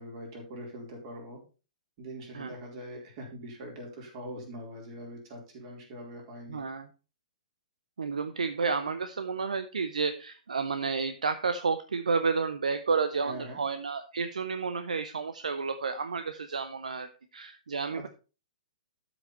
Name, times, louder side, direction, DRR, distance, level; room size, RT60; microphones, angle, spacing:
voice 1, 0.0-1.4 2.0-6.6 13.2-13.6 17.9-18.1, equal, 40° right, 0 dB, 4.3 m, -42 dB
voice 2, 6.5-6.9 8.0-18.1, right 5 dB, 65° right, 10 dB, 0.8 m, -31 dB
12.5 x 6.0 x 4.2 m, 0.33 s
figure-of-eight pair, 115°, 4 cm